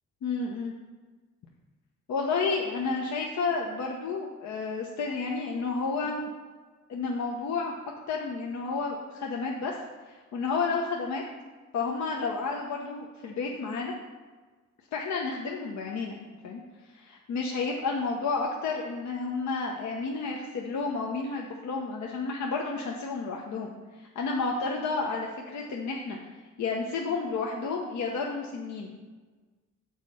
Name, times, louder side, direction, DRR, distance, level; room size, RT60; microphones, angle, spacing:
voice 1, 0.2-0.7 2.1-6.3 6.9-7.7 8.1-9.8 10.1-11.2 11.7-13.9 14.9-16.2 16.4-26.2 26.6-28.9, left 4 dB, 65° left, 0 dB, 0.9 m, -31 dB
7.4 x 4.2 x 6.3 m, 1.3 s
cardioid pair, 90°, 30 cm